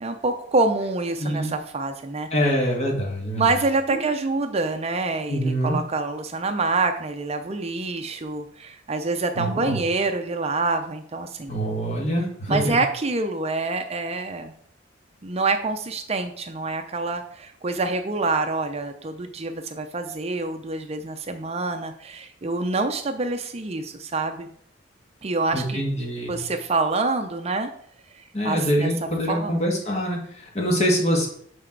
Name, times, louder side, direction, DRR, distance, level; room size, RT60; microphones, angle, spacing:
voice 1, 0.0-2.3 3.4-11.5 12.5-14.5 15.2-24.5 25.2-25.8 26.3-27.7 28.1-28.9 29.3-29.6, right 3 dB, 30° right, 7 dB, 0.5 m, -26 dB
voice 2, 1.2-1.5 2.3-3.4 3.9-4.0 5.3-5.8 9.4-9.8 11.5-12.8 25.5-26.4 28.3-31.3, equal, 35° left, -1 dB, 1.9 m, -24 dB
6.2 x 5.9 x 4.6 m, 0.64 s
head